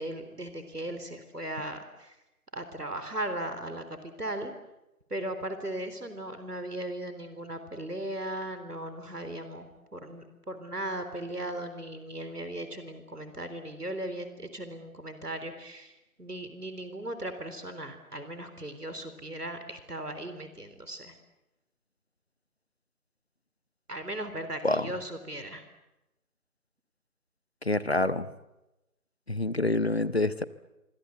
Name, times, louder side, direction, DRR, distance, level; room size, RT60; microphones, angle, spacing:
voice 1, 0.0-2.2 2.5-4.5 5.1-21.1 23.9-25.6, right 1 dB, 85° right, 9 dB, 3.8 m, -37 dB
voice 2, 27.6-28.3 29.3-30.4, left 2 dB, 45° left, 16 dB, 1.0 m, -27 dB
27.0 x 24.0 x 8.1 m, 0.96 s
figure-of-eight pair, 165°, 45 cm